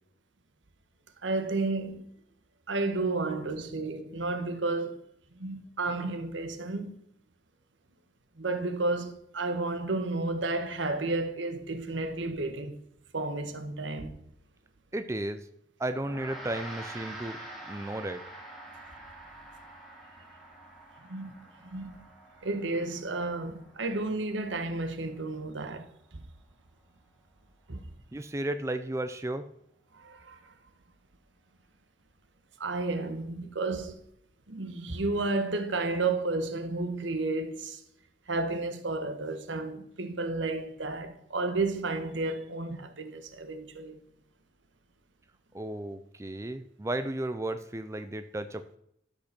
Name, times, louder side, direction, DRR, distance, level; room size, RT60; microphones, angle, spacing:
voice 1, 1.2-2.0 2.7-4.9 5.4-7.0 8.4-12.8 13.1-14.2 21.1-22.1 22.4-25.9 26.1-26.2 27.7-27.8 29.9-30.5 32.6-34.0 34.5-37.8 38.3-44.0, right 3 dB, 80° right, 1.2 m, -32 dB
voice 2, 14.9-15.5 15.8-17.4 17.7-18.2 28.1-29.5 45.5-48.8, right 1 dB, 15° right, 0.4 m, -34 dB
Gong, 16.0-25.6, right 1 dB, ahead, 2.0 m, -47 dB
12.0 x 5.4 x 5.9 m
head